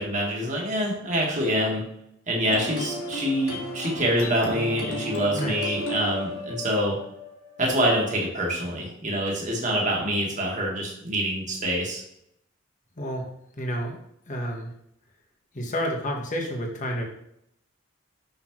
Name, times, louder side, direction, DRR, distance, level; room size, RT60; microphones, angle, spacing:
voice 1, 0.0-1.8 2.3-7.0 7.6-12.0, equal, 35° right, -2 dB, 1.6 m, -26 dB
sound 1, 2.4-8.0, left 1 dB, 85° left, 1.8 m, -34 dB
voice 2, 5.3-5.7 13.0-13.3 13.6-14.0 14.3-14.7 15.5-17.1, equal, 35° left, 1 dB, 1.3 m, -30 dB
6.0 x 5.6 x 3.1 m, 0.74 s
head